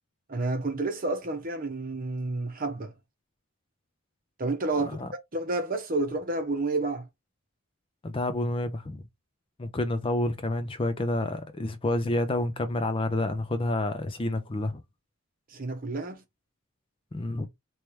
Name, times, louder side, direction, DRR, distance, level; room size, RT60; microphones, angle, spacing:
voice 1, 0.3-2.9 4.4-4.9 5.3-7.1 15.5-16.2, right 2 dB, 40° right, 0.9 m, -30 dB
voice 2, 8.0-9.0 9.6-14.8 17.1-17.5, left 1 dB, 25° left, 0.4 m, -29 dB
3.3 x 3.1 x 3.0 m
head